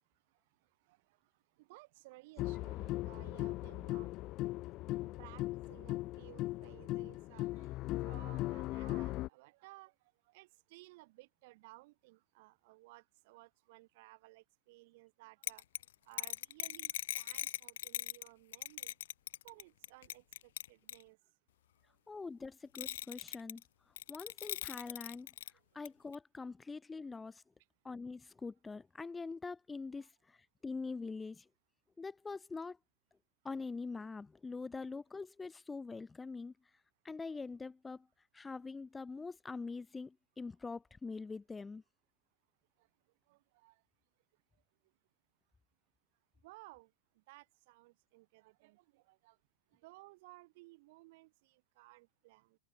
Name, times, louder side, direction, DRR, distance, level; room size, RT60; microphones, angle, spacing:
voice 1, 0.8-1.3 1.6-4.4 4.8-9.9 10.2-15.6 16.0-18.9 19.4-21.2 25.5-25.6 30.0-30.1 42.8-42.9 43.3-43.8 46.4-49.4 49.7-52.6, right 22 dB, 45° right, 7.9 m, -58 dB
sound 1, 2.4-9.3, left 18 dB, 30° left, 0.9 m, -38 dB
sound 2, 15.4-18.3 18.5-21.0 22.7-23.6 24.0-25.5 25.8-25.9 26.1-26.2, left 12 dB, 75° left, 1.5 m, -40 dB
voice 2, 22.1-23.6 24.1-25.3 25.7-27.4 27.8-31.5 32.0-32.8 33.4-36.5 37.0-38.1 38.3-41.8, left 4 dB, 10° left, 1.7 m, -44 dB
supercardioid pair, 175°, 0 cm